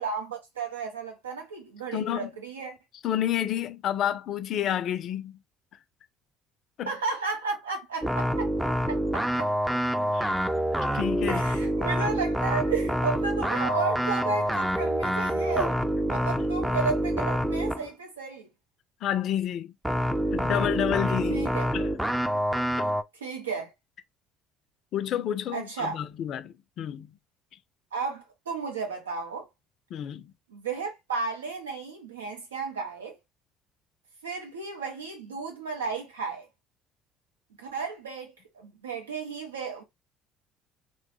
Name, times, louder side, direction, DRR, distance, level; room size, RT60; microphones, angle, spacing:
voice 1, 0.0-2.8 6.9-9.5 11.3-18.5 21.3-21.7 23.2-23.7 25.5-26.0 27.9-29.5 30.5-33.2 34.2-36.5 37.6-39.8, right 4 dB, 85° right, 0.7 m, -33 dB
voice 2, 1.9-2.3 3.0-5.4 6.8-6.9 10.1-10.3 10.9-11.4 19.0-19.7 20.3-21.5 21.7-21.9 22.8-22.9 24.9-27.1 29.9-30.3, left 11 dB, 55° left, 0.4 m, -29 dB
sound 1, 8.0-17.9 19.8-23.0, equal, 5° right, 0.4 m, -27 dB
3.0 x 2.1 x 3.0 m
hypercardioid pair, 60°, 0 cm